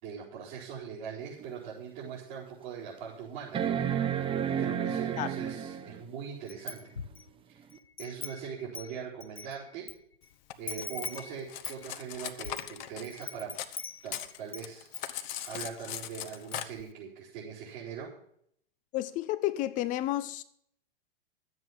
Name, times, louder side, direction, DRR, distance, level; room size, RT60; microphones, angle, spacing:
voice 1, 0.0-3.8 4.6-6.9 7.5-7.6 8.0-9.9 10.6-13.5 14.0-14.9 15.4-18.1, right 7 dB, 50° right, 4.6 m, -41 dB
sound 1, 1.4-1.5 2.1-2.2 3.5-6.0 7.7-7.8, right 9 dB, 20° right, 0.9 m, -31 dB
Wind chime, 6.5-7.3 7.7-9.9 10.2-10.3 10.7-14.7 14.9-15.7 16.0-16.1 16.4-16.8, left 5 dB, 90° left, 0.6 m, -42 dB
Cutlery silverware, 10.5-13.8 14.1-16.6, left 12 dB, 50° left, 1.0 m, -39 dB
voice 2, 18.9-20.4, left 14 dB, 25° left, 0.5 m, -31 dB
12.0 x 8.0 x 7.2 m
figure-of-eight pair, 100°, 29 cm